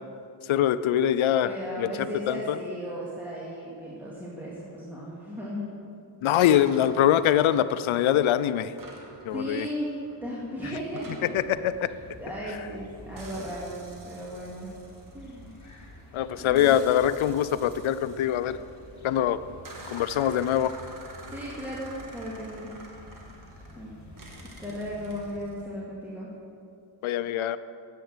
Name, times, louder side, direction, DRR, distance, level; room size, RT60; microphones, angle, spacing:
voice 1, 0.5-1.5 1.8-1.9 2.3-2.6 6.2-8.7 9.3-9.7 11.3-11.9 16.1-18.6 19.0-19.4 19.9-20.7 27.0-27.6, left 10 dB, 80° left, 14 dB, 0.6 m, -23 dB
voice 2, 1.4-5.7 9.3-9.9 10.2-11.3 12.2-13.8 14.0-14.7 15.1-15.6 16.4-16.9 21.2-22.7 23.8-24.0 24.6-26.3, equal, 5° right, -7 dB, 2.3 m, -36 dB
sound 1, 6.3-8.3 8.8-12.8 13.2-15.9 16.5-19.0 19.6-23.8 24.2-25.6, right 2 dB, 45° right, 2.2 m, -48 dB
sound 2, 11.3-25.4, left 1 dB, 35° left, 2.5 m, -49 dB
10.0 x 8.4 x 8.0 m, 2.5 s
cardioid pair, 85°, 47 cm